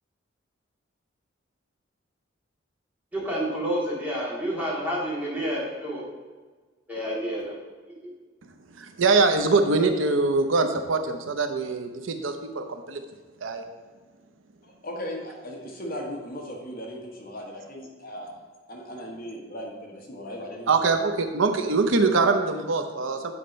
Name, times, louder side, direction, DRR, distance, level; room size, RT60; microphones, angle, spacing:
voice 1, 3.1-6.0 6.9-7.5 8.0-8.1, equal, 10° right, -6 dB, 2.4 m, -29 dB
voice 2, 8.8-13.0 13.4-13.6 20.7-23.3, right 3 dB, 85° right, 7 dB, 0.7 m, -23 dB
voice 3, 14.6-18.3 18.7-21.0 22.1-22.3, equal, 50° left, 0 dB, 1.3 m, -37 dB
8.6 x 4.3 x 5.2 m, 1.4 s
head